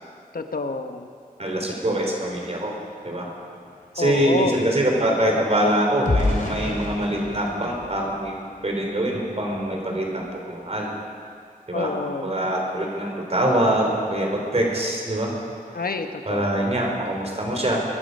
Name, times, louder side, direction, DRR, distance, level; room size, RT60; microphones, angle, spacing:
voice 1, 0.3-1.1 4.0-4.7 11.7-12.4 15.7-16.7, left 3 dB, 75° left, 6 dB, 1.0 m, -28 dB
voice 2, 1.4-2.7 3.0-3.3 3.9-8.3 8.6-10.9 11.7-12.0 12.2-15.3 16.3-17.8, right 1 dB, 45° right, 0 dB, 3.7 m, -24 dB
sound 1, 3.5-9.0 9.5-9.7 10.0-10.3, left 2 dB, 60° left, 2.6 m, -31 dB
21.0 x 11.0 x 5.4 m, 2.2 s
wide cardioid pair, 55°, 15 cm